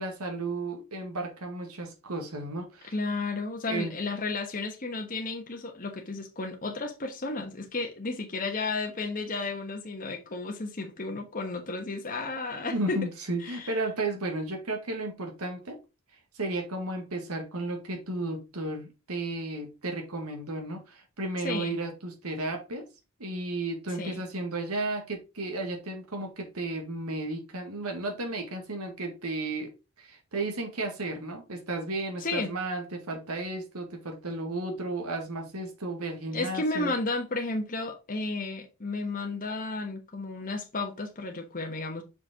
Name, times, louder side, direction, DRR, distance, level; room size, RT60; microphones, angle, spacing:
voice 1, 0.0-2.9 3.7-3.9 12.6-15.8 16.3-22.9 23.2-29.7 30.0-36.9, right 2 dB, 80° right, 1.8 m, -33 dB
voice 2, 2.9-13.1 13.4-13.8 21.4-21.8 24.0-24.2 32.2-32.5 36.3-42.0, left 3 dB, 40° left, 1.2 m, -33 dB
6.3 x 5.1 x 3.7 m
head